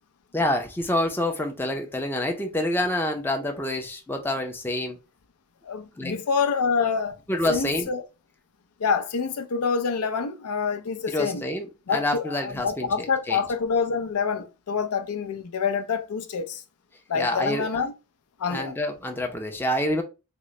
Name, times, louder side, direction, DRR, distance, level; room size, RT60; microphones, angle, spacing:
voice 1, 0.3-5.0 6.0-6.1 7.3-7.9 11.1-12.9 13.3-13.4 17.2-17.8 18.5-20.0, left 1 dB, 10° left, 0.4 m, -27 dB
voice 2, 5.6-7.2 7.5-8.0 8.8-11.4 11.9-16.6 17.1-17.9 18.4-18.7, left 5 dB, 85° left, 0.5 m, -26 dB
3.7 x 2.0 x 3.1 m
head